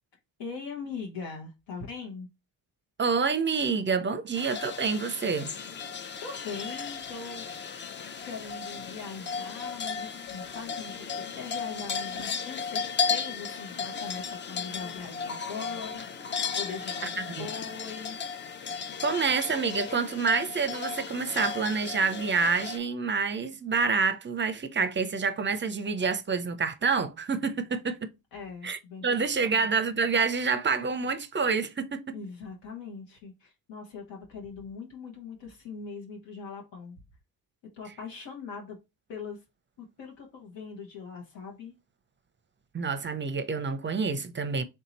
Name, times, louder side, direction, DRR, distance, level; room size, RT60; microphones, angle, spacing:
voice 1, 0.4-2.3 6.2-7.5 8.2-16.0 16.5-18.2 28.3-29.7 32.1-37.0 37.7-38.8 39.1-39.4 39.8-41.7, left 5 dB, 80° left, 1.3 m, -41 dB
voice 2, 3.0-5.5 17.0-17.5 19.0-28.1 28.6-32.2 42.7-44.6, right 5 dB, 25° right, 0.5 m, -28 dB
sound 1, 4.3-22.8, left 6 dB, 25° left, 0.4 m, -35 dB
3.6 x 2.8 x 4.0 m
cardioid pair, 90°, 43 cm